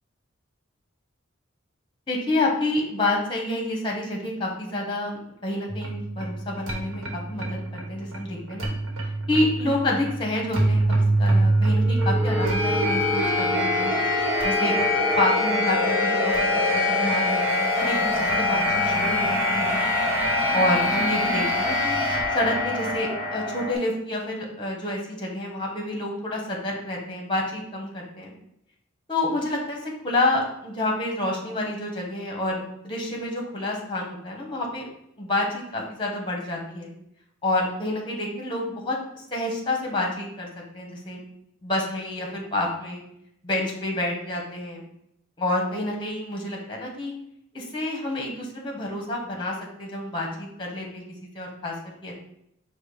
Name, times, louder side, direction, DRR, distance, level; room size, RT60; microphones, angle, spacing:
voice 1, 2.1-8.7 9.3-13.9 14.4-14.7 15.2-16.5 16.7-19.8 20.5-22.0 22.3-28.3 29.1-34.9 35.2-36.9 37.4-40.5 40.7-41.2 41.6-43.0 43.4-44.8 45.4-47.1 47.5-51.0 51.3-51.7 52.0-52.1, left 1 dB, 25° left, 0 dB, 1.0 m, -28 dB
sound 1, 5.7-23.7, left 1 dB, 85° right, 1.1 m, -24 dB
5.0 x 2.2 x 4.8 m, 0.77 s
head